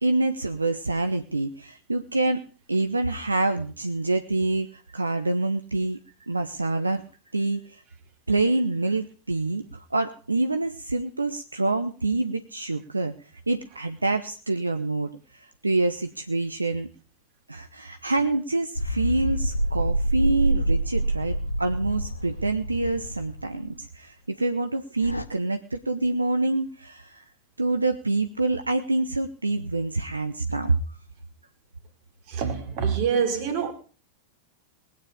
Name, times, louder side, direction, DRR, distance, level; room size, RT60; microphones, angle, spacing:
voice 1, 0.0-2.4 2.7-6.0 6.3-7.0 7.3-7.8 8.3-13.1 13.5-16.9 17.5-27.2 27.6-30.8, right 2 dB, 80° right, 0.9 m, -26 dB
sound 1, 18.8-23.7 25.0-25.2, right 1 dB, 85° left, 1.0 m, -27 dB
voice 2, 32.3-33.7, right 6 dB, 45° right, 3.0 m, -25 dB
20.0 x 9.3 x 5.0 m
figure-of-eight pair, 90°, 0 cm